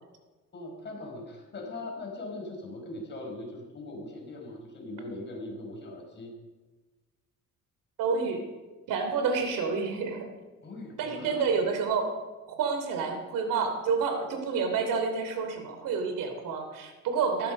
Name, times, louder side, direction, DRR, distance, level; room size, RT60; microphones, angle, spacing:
voice 1, 0.5-6.3 10.6-11.5, left 2 dB, 35° left, 0 dB, 5.3 m, -40 dB
voice 2, 8.0-8.4 8.9-10.3 11.0-12.1 12.6-17.5, right 5 dB, 85° right, 5 dB, 3.1 m, -29 dB
17.5 x 14.5 x 5.4 m, 1.2 s
cardioid pair, 135°, 32 cm